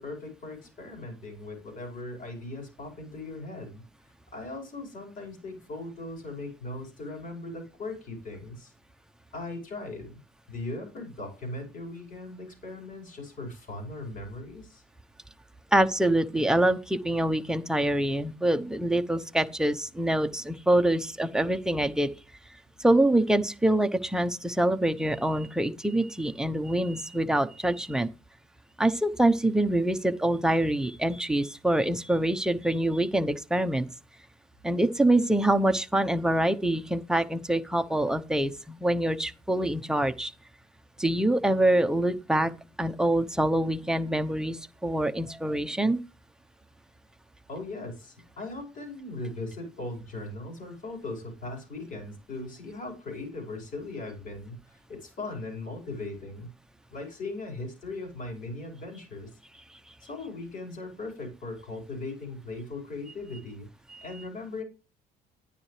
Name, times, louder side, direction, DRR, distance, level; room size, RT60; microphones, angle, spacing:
voice 1, 0.0-3.8 4.3-8.7 9.3-10.2 10.5-14.8 47.5-56.5 56.9-59.4 60.0-63.7 64.0-64.6, left 2 dB, 50° left, 5.1 m, -39 dB
voice 2, 15.7-22.1 22.8-28.1 28.8-33.9 34.6-40.3 41.0-42.5 42.8-46.0, right 1 dB, 5° right, 0.9 m, -25 dB
11.0 x 9.7 x 3.3 m
cardioid pair, 110°, 17 cm